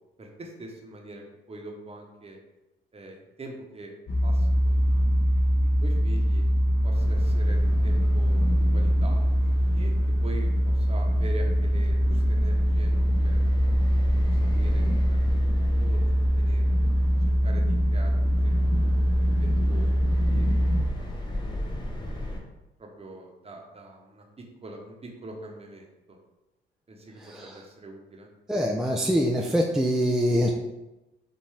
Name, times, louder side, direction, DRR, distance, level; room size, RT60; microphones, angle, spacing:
voice 1, 0.2-2.4 2.9-3.9 4.2-6.4 6.8-9.2 9.7-9.9 10.2-14.1 14.5-17.0 17.4-19.0 19.4-21.6 22.1-22.4 22.8-26.2 26.9-28.3, right 2 dB, 30° right, 1 dB, 0.9 m, -44 dB
sound 1, 4.1-20.8, equal, 50° left, 0.9 m, -23 dB
sound 2, 6.9-22.4, left 1 dB, 20° left, 0.9 m, -37 dB
voice 2, 27.2-27.6 28.5-30.5, equal, ahead, 0 dB, 0.4 m, -24 dB
5.5 x 2.6 x 3.3 m, 0.99 s
cardioid pair, 90°, 20 cm